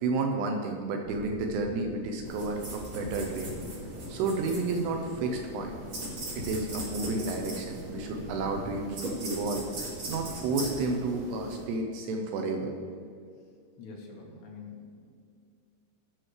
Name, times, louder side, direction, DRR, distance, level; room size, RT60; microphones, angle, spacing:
voice 1, 0.0-3.5 4.1-5.8 6.4-12.7, right 3 dB, 85° right, 3 dB, 2.8 m, -31 dB
sound 1, 1.0-10.4, left 1 dB, 40° left, 2.6 m, -46 dB
sound 2, 2.2-11.6, right 1 dB, 50° right, 1.4 m, -39 dB
voice 2, 13.8-15.1, left 4 dB, 75° left, -1 dB, 3.3 m, -46 dB
18.0 x 6.2 x 3.2 m, 2.2 s
omnidirectional pair, 5.0 m